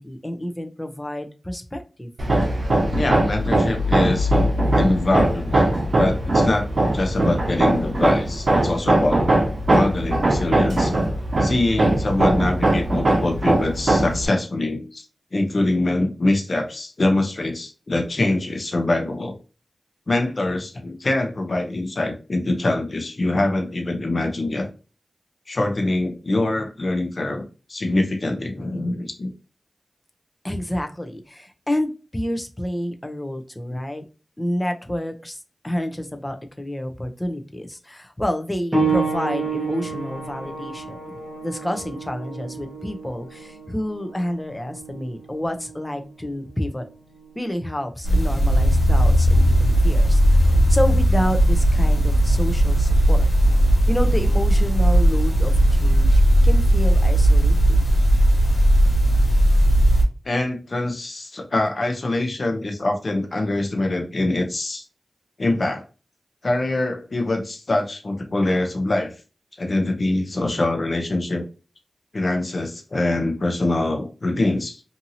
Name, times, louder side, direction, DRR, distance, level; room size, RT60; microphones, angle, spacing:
voice 1, 0.0-2.1 30.4-34.0 34.4-41.0 41.4-46.8 47.4-53.3 53.9-57.9, left 1 dB, 20° left, 6 dB, 0.6 m, -29 dB
Hammer, 2.2-14.3, right 1 dB, 60° right, 0.6 m, -20 dB
voice 2, 2.9-4.3 4.8-5.7 6.0-9.2 9.7-11.0 11.4-15.1 15.3-19.4 20.1-24.7 25.5-27.4 27.7-29.3 33.7-33.8 60.2-64.8 65.4-65.8 66.4-69.1 69.6-71.5 72.1-74.8, left 2 dB, 55° left, 4 dB, 0.7 m, -24 dB
sound 1, 38.7-48.9 49.9-50.0 50.8-50.9, right 4 dB, 20° right, 1.2 m, -30 dB
sound 2, 48.0-60.0, equal, 85° left, 1.4 m, -17 dB
2.7 x 2.7 x 2.7 m, 0.33 s
wide cardioid pair, 60°, 0 cm